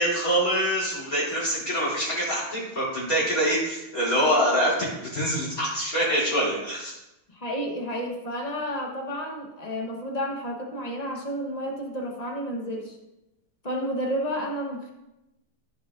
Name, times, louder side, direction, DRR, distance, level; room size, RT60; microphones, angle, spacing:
voice 1, 0.0-6.9, equal, 40° left, -8 dB, 3.5 m, -25 dB
voice 2, 7.3-13.0 13.6-14.9, equal, 25° left, 0 dB, 1.0 m, -31 dB
14.0 x 5.1 x 3.7 m, 0.93 s
omnidirectional pair, 2.3 m